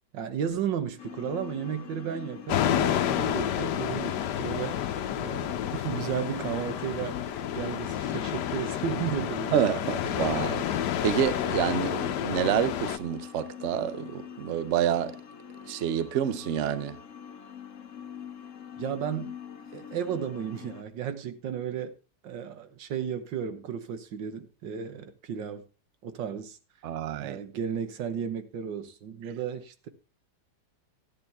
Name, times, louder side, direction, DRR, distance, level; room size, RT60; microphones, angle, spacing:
voice 1, 0.1-4.8 5.2-7.2 7.5-9.6 18.8-19.4 19.7-21.9 22.2-25.6 26.0-26.6 27.2-29.9, right 8 dB, 90° right, 1.8 m, -34 dB
sound 1, 1.0-20.8, left 8 dB, 55° left, 0.9 m, -43 dB
sound 2, 2.5-13.0, left 10 dB, 75° left, 1.3 m, -30 dB
voice 2, 9.5-10.6 11.0-15.2 15.7-17.0 26.8-27.4, right 9 dB, 60° right, 0.8 m, -28 dB
13.5 x 9.4 x 3.4 m
omnidirectional pair, 1.9 m